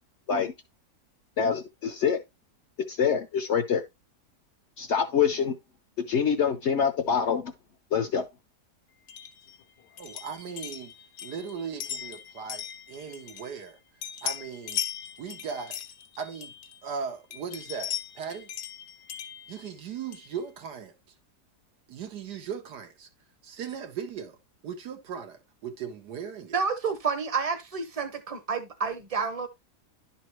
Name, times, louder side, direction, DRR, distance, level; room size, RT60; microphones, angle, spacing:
voice 1, 1.4-2.2 2.9-3.8 4.8-5.6 6.0-7.5 7.9-8.2, left 7 dB, 60° left, 0.8 m, -25 dB
sound 1, 9.1-13.7 14.0-16.9 17.3-20.4, left 9 dB, 85° left, 1.4 m, -39 dB
voice 2, 10.0-10.9 11.2-13.8 14.2-14.8 15.2-15.8 16.2-16.5 16.8-18.5 19.5-20.9 21.9-23.1 23.4-24.4 24.6-26.5, right 6 dB, 90° right, 1.7 m, -38 dB
voice 3, 26.5-29.5, right 5 dB, 30° right, 0.8 m, -29 dB
11.0 x 4.1 x 3.0 m
omnidirectional pair, 1.7 m